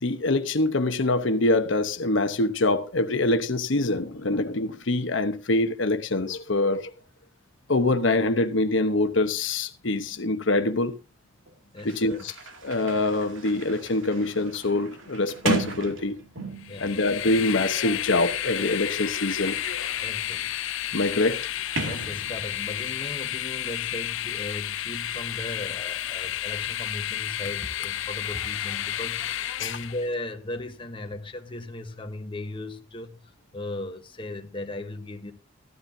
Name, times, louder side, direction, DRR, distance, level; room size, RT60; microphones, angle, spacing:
voice 1, 0.0-6.9 7.7-10.9 11.8-12.2 12.6-16.1 16.8-19.6 20.9-21.5 29.6-29.8, left 2 dB, 70° left, 1.0 m, -24 dB
Sliding door, 11.5-11.6 11.8-16.8 17.7-22.7, right 2 dB, 90° right, 2.5 m, -36 dB
voice 2, 11.7-12.2 16.7-17.0 20.0-20.5 21.8-33.2 33.5-35.3, left 1 dB, 25° left, 1.1 m, -37 dB
Train, 16.6-30.1, left 11 dB, 90° left, 0.6 m, -31 dB
15.0 x 12.5 x 2.7 m
head